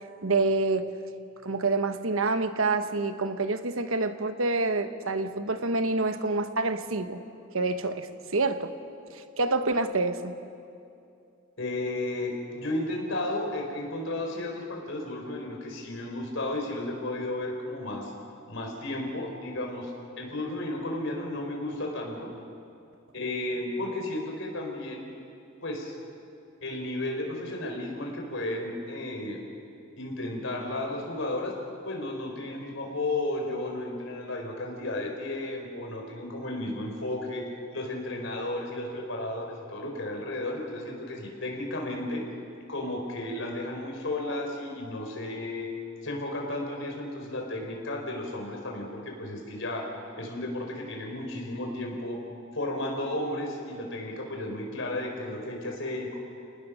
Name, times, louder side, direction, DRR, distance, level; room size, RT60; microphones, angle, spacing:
voice 1, 0.2-0.9 1.4-7.2 7.5-8.7 9.1-10.3, right 3 dB, 75° right, 9 dB, 1.2 m, -27 dB
voice 2, 11.6-18.1 18.5-19.9 20.2-22.3 23.1-25.1 25.6-25.9 26.6-29.4 30.0-42.2 42.7-45.7 46.0-49.9 50.2-52.2 52.5-56.2, left 1 dB, 60° left, 0 dB, 4.6 m, -33 dB
30.0 x 19.5 x 6.4 m, 2.6 s
head